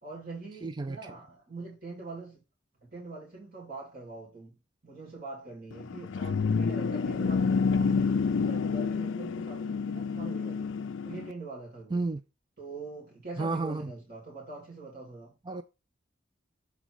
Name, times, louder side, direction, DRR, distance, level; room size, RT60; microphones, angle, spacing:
voice 1, 0.0-2.4 2.8-4.6 4.8-10.7 11.0-12.0 12.6-15.3, right 3 dB, 50° right, 2.8 m, -43 dB
voice 2, 0.6-1.0 11.9-12.2 13.4-13.8 15.5-15.6, right 3 dB, 25° right, 0.3 m, -30 dB
sound 1, 5.7-11.3, left 5 dB, 90° left, 0.4 m, -28 dB
7.1 x 3.8 x 4.6 m
head